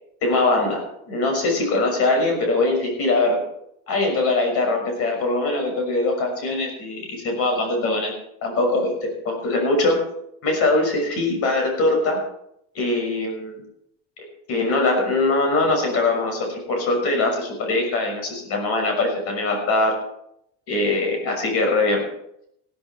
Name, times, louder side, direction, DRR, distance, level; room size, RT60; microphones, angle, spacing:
voice 1, 0.2-3.4 3.9-8.1 8.4-10.0 10.4-12.2 12.7-13.6 14.5-19.9 20.7-22.0, left 2 dB, 50° left, 2 dB, 6.4 m, -22 dB
15.5 x 14.0 x 4.6 m, 0.75 s
cardioid pair, 165°, 29 cm